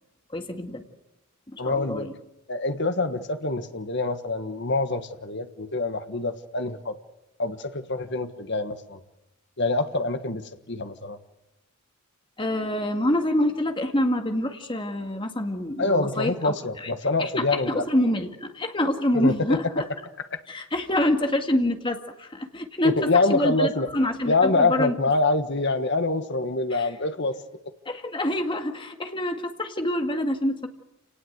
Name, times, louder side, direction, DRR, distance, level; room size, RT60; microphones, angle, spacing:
voice 1, 0.3-0.8 1.5-2.1 12.4-16.9 17.2-19.9 20.5-25.0 26.7-26.9 27.9-30.7, left 1 dB, 25° left, 5 dB, 2.0 m, -26 dB
voice 2, 1.6-2.1 2.5-6.9 7.4-9.0 9.6-11.2 15.8-17.8 19.1-19.3 20.3-20.4 22.8-23.9 24.2-27.4, left 3 dB, 55° left, 9 dB, 1.5 m, -25 dB
28.0 x 18.5 x 8.1 m, 0.94 s
head